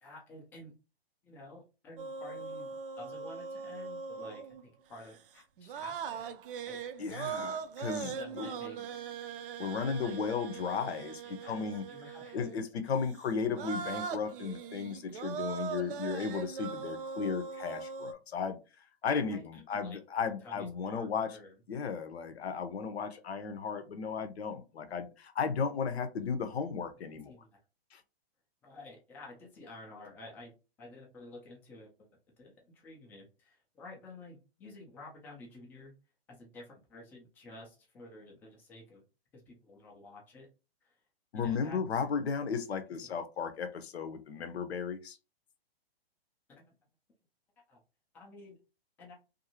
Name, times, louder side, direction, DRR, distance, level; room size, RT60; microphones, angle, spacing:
voice 1, 0.0-0.7 1.2-6.3 6.7-6.8 7.4-7.7 8.0-8.9 10.0-10.2 11.2-12.5 19.3-20.0 20.4-21.5 27.3-27.6 28.6-30.5 30.8-32.1 32.4-35.9 36.3-39.0 39.3-40.5 40.8-41.0 41.3-41.8 43.0-43.2 46.5-46.7 47.7-47.8 48.1-48.6 49.0-49.1, left 2 dB, 5° left, 0.3 m, -51 dB
sound 1, 2.0-4.6 5.0-5.2 5.6-12.7 13.2-13.3 13.5-18.1, right 6 dB, 60° right, 0.5 m, -41 dB
voice 2, 7.0-8.5 9.6-11.8 12.3-18.6 19.0-21.4 21.7-27.3 27.9-28.0 41.3-45.2, left 6 dB, 85° left, 0.7 m, -35 dB
2.5 x 2.5 x 2.8 m
hypercardioid pair, 135°, 31 cm